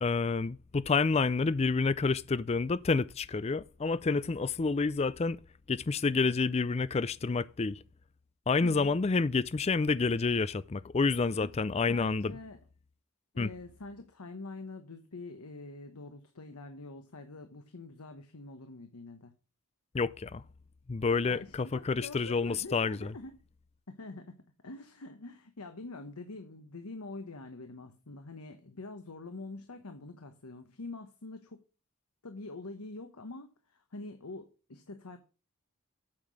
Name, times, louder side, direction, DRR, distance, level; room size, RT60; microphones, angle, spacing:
voice 1, 0.0-5.4 5.7-7.8 8.5-12.3 13.4-13.5 19.9-20.4 20.9-23.1, left 4 dB, 30° left, 0.4 m, -29 dB
voice 2, 8.6-8.9 11.4-11.5 11.9-12.6 13.3-19.3 21.2-23.3 23.9-24.3 24.6-31.6 32.2-35.2, left 3 dB, 85° left, 1.1 m, -45 dB
8.8 x 5.9 x 6.3 m
head